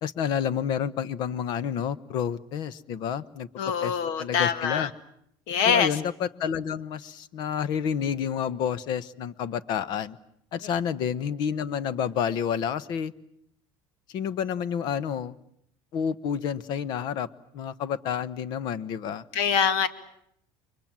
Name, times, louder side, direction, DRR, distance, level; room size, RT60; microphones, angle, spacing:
voice 1, 0.0-3.5 3.8-4.9 5.6-10.2 10.5-13.1 14.1-15.3 15.9-17.3 17.5-19.2, left 8 dB, 50° left, 18 dB, 1.0 m, -29 dB
voice 2, 3.6-4.9 5.5-5.9 19.3-19.9, left 7 dB, 70° left, 12 dB, 2.1 m, -24 dB
29.5 x 24.0 x 7.6 m, 0.71 s
cardioid pair, 160°, 10 cm